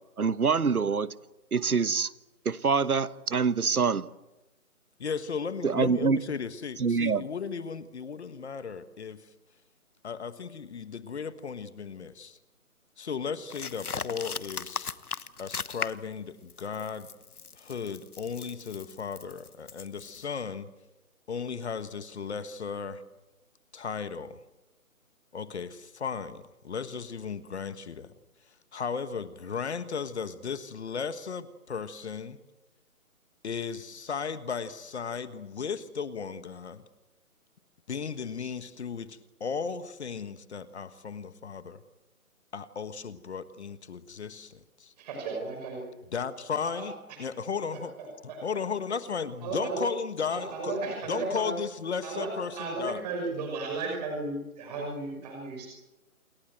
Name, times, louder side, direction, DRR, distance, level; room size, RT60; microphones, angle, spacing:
voice 1, 0.2-1.1 1.5-2.1 2.4-4.1 5.6-6.2 6.8-7.2, right 5 dB, 85° right, 1.3 m, -25 dB
voice 2, 5.0-9.2 10.0-12.4 13.0-14.9 15.4-17.1 17.5-20.7 21.3-23.0 23.7-24.4 25.3-28.1 28.7-32.4 33.4-36.8 37.9-41.8 42.5-44.9 46.1-47.9 48.4-50.8 51.1-53.0, left 6 dB, 50° left, 1.5 m, -35 dB
sound 1, 13.5-16.1 16.5-20.3, left 5 dB, 85° left, 1.2 m, -38 dB
voice 3, 45.0-45.8 46.6-46.9 47.7-48.4 49.4-49.8 50.3-51.5 52.0-55.7, right 3 dB, 30° right, 5.9 m, -35 dB
28.0 x 22.0 x 7.9 m
figure-of-eight pair, 155°, 43 cm